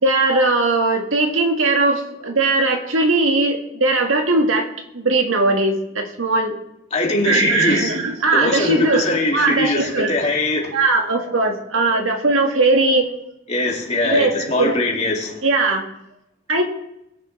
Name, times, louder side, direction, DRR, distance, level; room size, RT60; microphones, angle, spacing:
voice 1, 0.0-4.7 4.9-6.5 7.2-10.1 10.7-13.1 14.0-14.8 15.4-15.8 16.5-16.6, right 2 dB, 85° right, 3 dB, 1.8 m, -19 dB
voice 2, 6.9-7.9 8.3-10.7 13.5-15.4, left 2 dB, 35° left, -2 dB, 2.5 m, -21 dB
20.5 x 7.6 x 3.3 m, 0.84 s
head